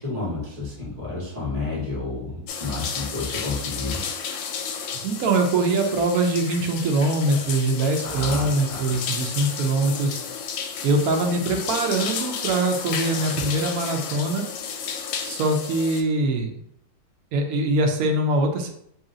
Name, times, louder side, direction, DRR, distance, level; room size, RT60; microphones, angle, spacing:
voice 1, 0.0-4.0 8.0-8.9, left 3 dB, 20° right, -6 dB, 1.4 m, -30 dB
sound 1, 2.5-16.0, left 6 dB, 80° left, 1.2 m, -32 dB
voice 2, 5.0-10.2 10.8-14.4 15.2-16.5 17.3-18.7, right 2 dB, 65° right, 3 dB, 0.9 m, -23 dB
3.1 x 2.8 x 3.7 m, 0.73 s
omnidirectional pair, 2.0 m